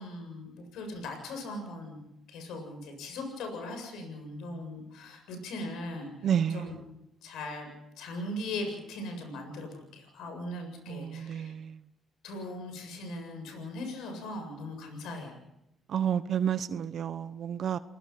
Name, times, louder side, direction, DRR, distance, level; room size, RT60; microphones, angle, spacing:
voice 1, 0.0-2.0 2.3-6.8 7.2-7.7 8.0-11.5 12.2-15.4, left 1 dB, 85° left, 5 dB, 7.7 m, -39 dB
voice 2, 6.2-6.7 10.9-11.8 15.9-17.8, right 8 dB, 65° right, 13 dB, 0.9 m, -30 dB
29.5 x 19.5 x 5.9 m, 0.83 s
cardioid pair, 90°, 0 cm